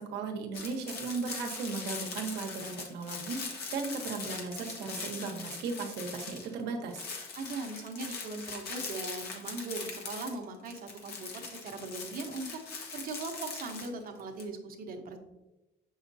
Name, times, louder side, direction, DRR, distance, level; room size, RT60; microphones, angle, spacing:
voice 1, 0.0-7.0, right 4 dB, 80° right, 3 dB, 1.1 m, -36 dB
sound 1, 0.5-6.6 6.9-14.4, left 4 dB, 70° left, 1.3 m, -41 dB
voice 2, 7.3-12.6 12.9-15.2, right 3 dB, 60° right, 4 dB, 1.0 m, -39 dB
6.5 x 5.6 x 2.7 m, 1.0 s
cardioid pair, 110°, 17 cm